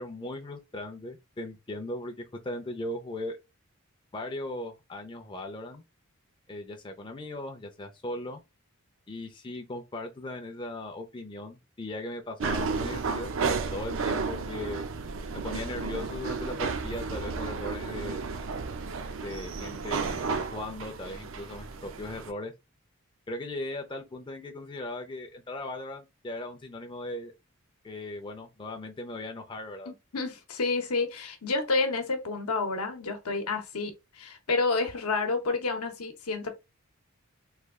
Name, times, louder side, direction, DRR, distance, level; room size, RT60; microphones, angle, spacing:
voice 1, 0.0-3.4 4.1-5.8 6.5-8.4 9.1-14.9 15.3-18.2 19.2-22.5 23.3-27.3 27.8-29.9, left 1 dB, 20° left, 0.4 m, -38 dB
sound 1, 12.4-22.3, right 4 dB, 60° right, 0.5 m, -33 dB
voice 2, 29.9-36.5, left 3 dB, 85° left, 0.8 m, -29 dB
3.2 x 2.3 x 3.5 m
head